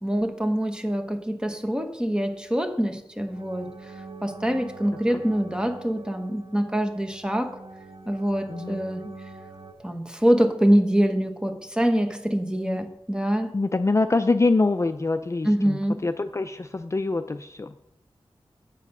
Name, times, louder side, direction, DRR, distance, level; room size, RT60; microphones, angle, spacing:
voice 1, 0.0-3.7 4.2-7.6 8.1-9.1 9.8-13.5 15.4-16.0, equal, 10° right, 7 dB, 1.1 m, -24 dB
sound 1, 3.3-9.7, right 3 dB, 75° right, 1.1 m, -44 dB
voice 2, 8.5-8.8 12.6-12.8 13.5-17.7, left 3 dB, 30° left, 8 dB, 0.4 m, -25 dB
8.2 x 7.5 x 5.4 m, 0.82 s
wide cardioid pair, 70°, 10 cm